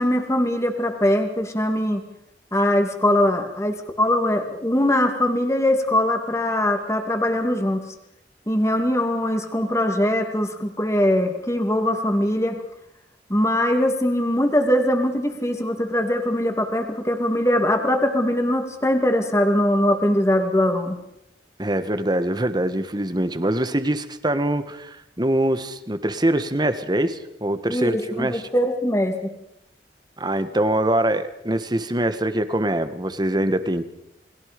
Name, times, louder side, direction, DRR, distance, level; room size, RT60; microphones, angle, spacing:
voice 1, 0.0-2.0 2.5-7.8 8.5-12.6 13.3-21.0 27.7-29.3, left 1 dB, 15° left, 5 dB, 2.4 m, -21 dB
voice 2, 21.6-28.4 30.2-33.8, right 1 dB, 25° right, 11 dB, 1.4 m, -23 dB
29.5 x 21.0 x 5.2 m, 0.82 s
head